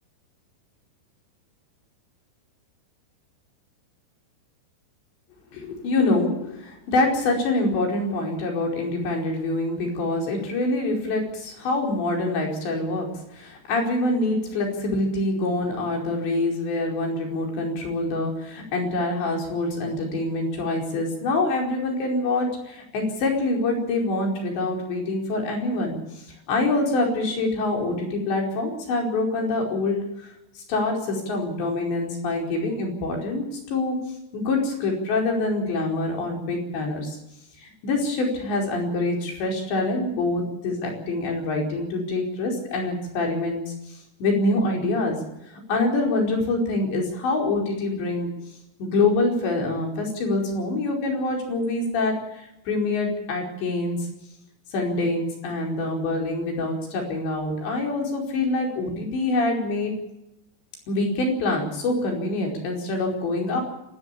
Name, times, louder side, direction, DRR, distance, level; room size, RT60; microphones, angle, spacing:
voice 1, 5.5-30.3 30.7-34.0 34.3-37.2 37.6-45.2 45.5-48.3 48.8-54.1 54.7-59.9 60.9-63.6, left 2 dB, 70° left, 1 dB, 7.0 m, -25 dB
28.0 x 13.5 x 8.5 m, 0.86 s
omnidirectional pair, 5.4 m